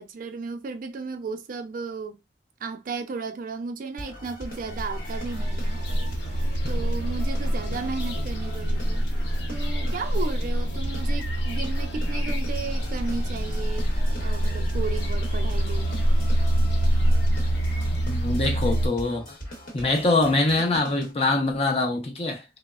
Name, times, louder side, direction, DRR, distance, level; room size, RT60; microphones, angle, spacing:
voice 1, 0.0-2.2 2.6-5.8 6.7-9.0 9.5-13.9 14.2-16.1, right 4 dB, 50° right, 0.4 m, -34 dB
sound 1, 4.0-21.1, equal, 55° left, 1.0 m, -41 dB
sound 2, 4.6-18.9, equal, 75° left, 0.6 m, -25 dB
voice 2, 18.1-19.2 19.7-22.4, left 2 dB, 35° left, 0.6 m, -23 dB
3.1 x 2.0 x 2.3 m
head